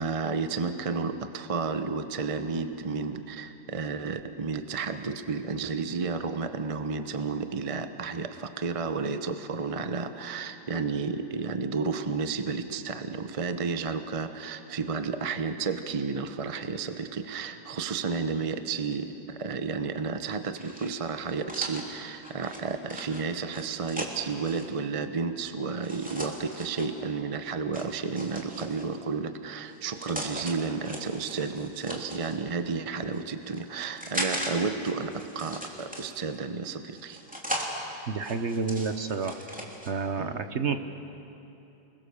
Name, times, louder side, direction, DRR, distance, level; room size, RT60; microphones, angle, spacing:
voice 1, 0.0-37.2 40.2-40.4, right 4 dB, 30° right, 9 dB, 0.6 m, -32 dB
sound 1, 20.5-24.7 25.8-26.9 27.7-29.0 29.7-30.5 30.8-32.4 33.0-34.5 34.8-36.4 36.9-37.7 38.2-39.9, equal, 5° right, 2.8 m, -38 dB
voice 2, 38.1-39.4 39.8-40.8, right 5 dB, 50° right, 9 dB, 1.1 m, -29 dB
29.5 x 21.5 x 6.9 m, 2.9 s
omnidirectional pair, 1.8 m